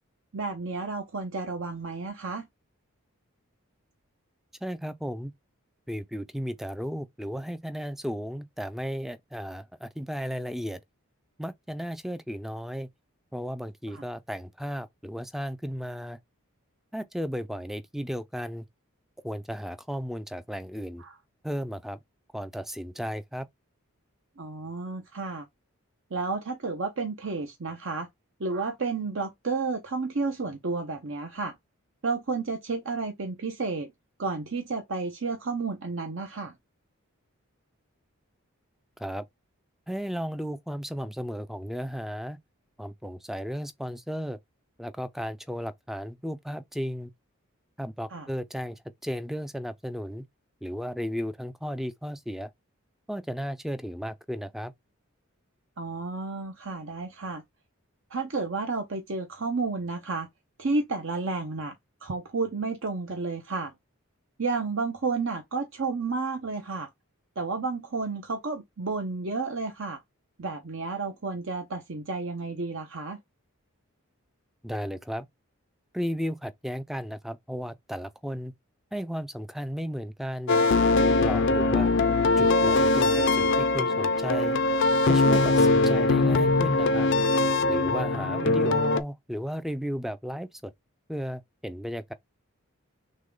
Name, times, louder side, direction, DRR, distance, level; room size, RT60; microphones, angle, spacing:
voice 1, 0.3-2.5 13.9-14.0 21.0-21.2 24.4-25.5 26.1-28.1 28.4-31.6 32.0-33.9 34.2-36.5 48.1-48.3 55.8-57.4 58.1-60.3 60.6-61.7 62.0-63.7 64.4-66.9 67.4-70.0 70.4-73.2 88.1-88.8, right 3 dB, 60° right, 0.7 m, -31 dB
voice 2, 4.6-5.3 5.9-10.8 11.4-12.9 13.3-16.2 16.9-18.7 19.2-21.0 21.4-22.0 22.3-23.5 39.0-39.3 39.9-42.4 42.8-44.4 44.8-47.1 47.8-50.2 50.6-52.5 53.1-54.7 74.6-75.3 75.9-78.5 78.9-80.6 81.2-81.9 82.4-84.6 85.1-87.1 87.7-90.7 91.1-92.1, equal, ahead, 0.4 m, -34 dB
sound 1, 80.5-89.0, left 3 dB, 55° left, 0.5 m, -22 dB
6.3 x 2.2 x 3.8 m
head